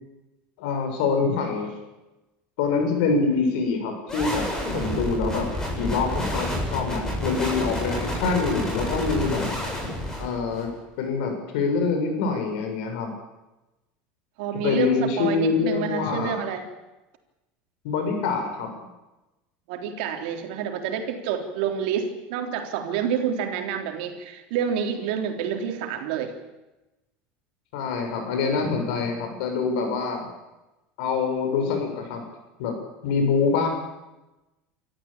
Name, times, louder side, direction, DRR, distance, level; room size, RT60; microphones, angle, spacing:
voice 1, 0.6-1.7 2.6-4.4 4.7-5.5 5.8-9.5 10.2-10.7 11.0-13.1 14.6-16.4 17.8-18.7 27.7-30.3 31.0-32.2 32.6-32.7 33.0-33.7, left 4 dB, 80° left, 4 dB, 6.8 m, -25 dB
sound 1, 4.1-10.7, left 1 dB, 10° left, 7.9 m, -29 dB
voice 2, 14.4-16.7 19.7-26.3, right 7 dB, 75° right, 5 dB, 3.7 m, -28 dB
26.5 x 14.0 x 8.8 m, 1.0 s
supercardioid pair, 130°, 5 cm